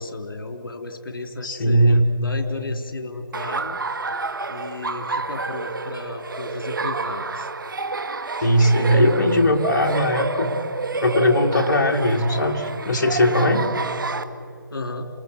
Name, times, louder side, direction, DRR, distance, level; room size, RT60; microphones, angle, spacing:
voice 1, 0.0-3.8 4.5-7.5 8.7-9.3 10.5-10.6 14.7-15.1, left 2 dB, 70° left, 5 dB, 3.3 m, -33 dB
voice 2, 1.4-2.0 8.4-10.5 11.0-13.7, equal, 55° left, 2 dB, 2.4 m, -19 dB
Laughter, 3.3-14.2, right 3 dB, 65° right, 1.4 m, -29 dB
27.5 x 20.5 x 7.9 m, 2.6 s
figure-of-eight pair, 155°, 12 cm